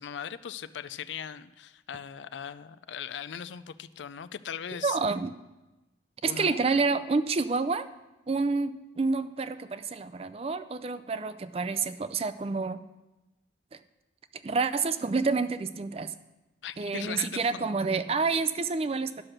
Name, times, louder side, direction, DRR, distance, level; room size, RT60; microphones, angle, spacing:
voice 1, 0.0-5.0 6.2-6.6 16.6-17.7, left 8 dB, 85° left, 14 dB, 0.4 m, -39 dB
voice 2, 4.8-5.4 6.2-7.9 8.3-12.8 14.4-16.1 16.8-19.2, right 4 dB, 35° right, 13 dB, 0.4 m, -28 dB
12.0 x 6.0 x 6.5 m, 1.1 s
head